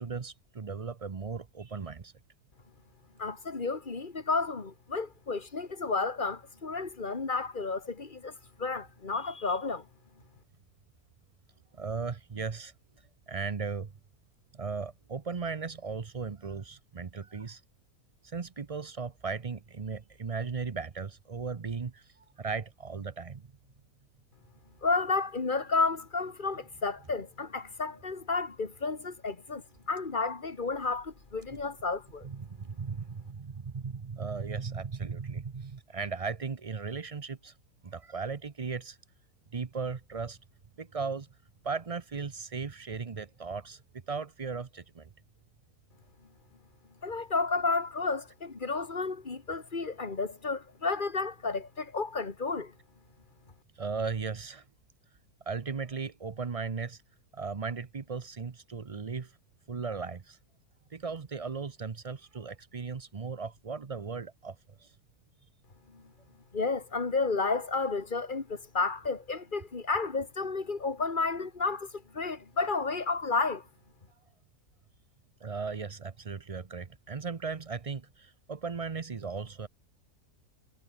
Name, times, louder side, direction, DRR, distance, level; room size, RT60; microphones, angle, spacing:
voice 1, 0.0-2.1 11.7-12.7 13.3-13.9 14.5-17.6 18.2-23.4 32.2-37.5 37.8-39.0 39.5-40.4 40.8-41.3 41.6-43.8 44.1-45.1 53.8-54.6 55.5-57.0 57.3-59.3 59.7-60.4 60.9-64.9 75.4-79.7, right 5 dB, 40° right, 0.5 m, -37 dB
voice 2, 3.2-9.9 24.8-32.3 47.0-52.7 65.9-66.0 66.5-73.6, left 4 dB, 30° left, 2.1 m, -32 dB
omnidirectional pair, 1.8 m